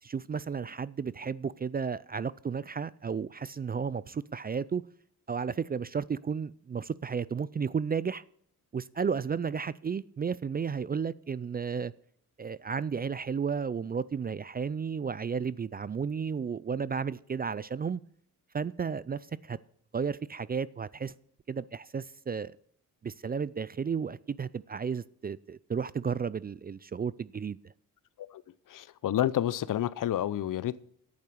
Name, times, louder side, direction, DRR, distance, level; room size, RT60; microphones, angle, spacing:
voice 1, 0.0-4.8 5.3-8.2 8.7-11.9 12.4-18.0 18.5-19.6 19.9-21.1 21.5-22.6 23.0-27.6, right 6 dB, 25° right, 0.4 m, -33 dB
voice 2, 28.7-30.9, left 12 dB, 65° left, 0.7 m, -30 dB
10.5 x 8.7 x 6.4 m
cardioid pair, 75°, 35 cm